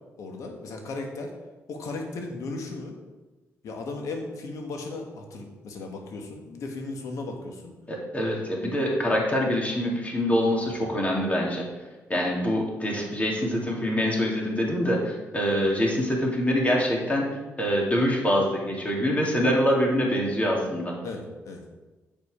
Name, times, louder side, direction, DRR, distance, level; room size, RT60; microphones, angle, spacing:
voice 1, 0.2-1.3 1.7-3.0 3.6-7.7 10.6-10.7 21.0-21.6, left 3 dB, 75° left, 3 dB, 1.5 m, -36 dB
voice 2, 7.9-11.7 12.1-17.2 17.6-20.9, equal, 25° left, -2 dB, 2.5 m, -25 dB
7.5 x 5.6 x 4.9 m, 1.2 s
cardioid pair, 70°, 6 cm